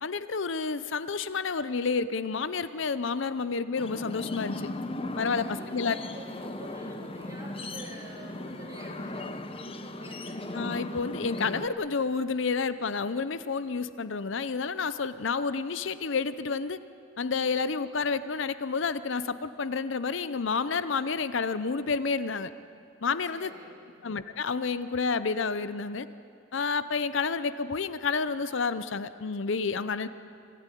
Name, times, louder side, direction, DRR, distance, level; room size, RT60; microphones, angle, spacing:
voice 1, 0.0-4.7 5.2-6.0 10.5-16.8 17.2-22.5 23.0-23.5 24.0-26.1 26.5-30.1, left 4 dB, 65° left, 14 dB, 0.6 m, -30 dB
sound 1, 3.8-11.7, left 1 dB, 30° left, 1.0 m, -37 dB
voice 2, 5.4-10.4 23.3-24.0, right 1 dB, 15° right, -3 dB, 4.1 m, -47 dB
25.5 x 16.5 x 9.9 m, 2.5 s
head